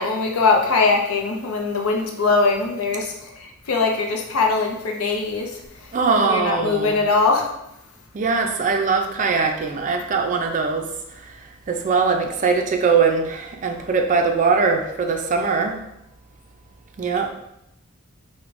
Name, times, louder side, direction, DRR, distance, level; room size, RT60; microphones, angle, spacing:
voice 1, 0.0-3.1 3.4-5.5 6.3-7.5, left 3 dB, 70° left, 2 dB, 0.5 m, -21 dB
voice 2, 5.9-7.0 8.1-10.9 11.3-11.4 11.7-15.8 17.0-17.3, right 5 dB, 35° right, 3 dB, 0.4 m, -21 dB
4.7 x 2.1 x 2.5 m, 0.83 s
head